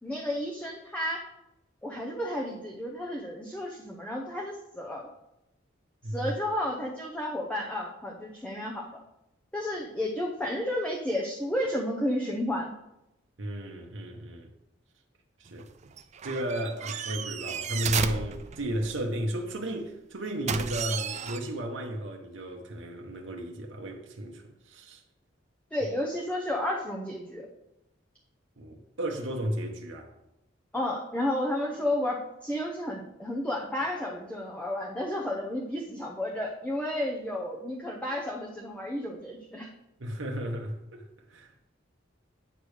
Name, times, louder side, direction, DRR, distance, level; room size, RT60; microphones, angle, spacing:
voice 1, 0.0-1.2 1.8-5.1 6.1-9.0 9.5-12.7 25.7-27.5 30.7-39.7, left 1 dB, 5° left, 0.7 m, -32 dB
voice 2, 13.4-14.5 15.4-15.7 16.2-25.0 28.6-30.1 40.0-41.6, equal, 65° right, 0.9 m, -34 dB
sound 1, 15.5-19.1 20.5-21.4, right 7 dB, 35° right, 0.4 m, -33 dB
9.0 x 3.3 x 6.4 m
head